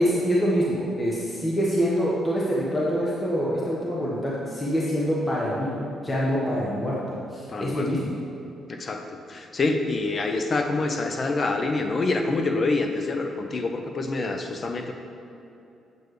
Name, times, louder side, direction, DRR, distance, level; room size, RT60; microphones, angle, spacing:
voice 1, 0.0-8.0, equal, 20° left, -6 dB, 1.3 m, -25 dB
voice 2, 7.5-8.1 8.7-14.9, left 3 dB, 40° left, 5 dB, 0.7 m, -26 dB
8.1 x 6.9 x 3.3 m, 2.8 s
cardioid pair, 90°, 0 cm